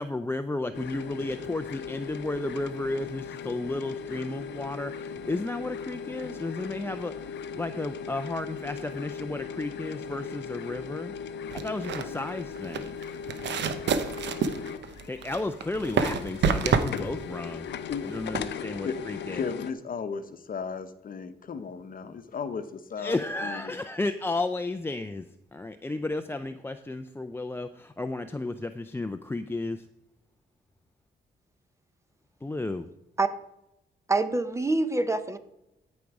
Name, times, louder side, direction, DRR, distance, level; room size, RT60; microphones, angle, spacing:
voice 1, 0.0-7.1 7.5-11.1 11.5-12.9 15.1-17.7 18.0-19.4 23.0-29.9 32.4-32.9, left 2 dB, 15° left, 8 dB, 0.4 m, -33 dB
sound 1, 0.7-19.7, left 6 dB, 80° left, 0.6 m, -38 dB
sound 2, 11.5-18.5, right 6 dB, 80° right, 0.9 m, -29 dB
voice 2, 17.9-19.0 19.3-23.2 23.4-23.8, left 6 dB, 50° left, 10 dB, 0.9 m, -36 dB
voice 3, 34.1-35.4, right 3 dB, 15° right, 11 dB, 0.8 m, -25 dB
13.5 x 5.3 x 4.8 m, 0.85 s
cardioid pair, 95°, 18 cm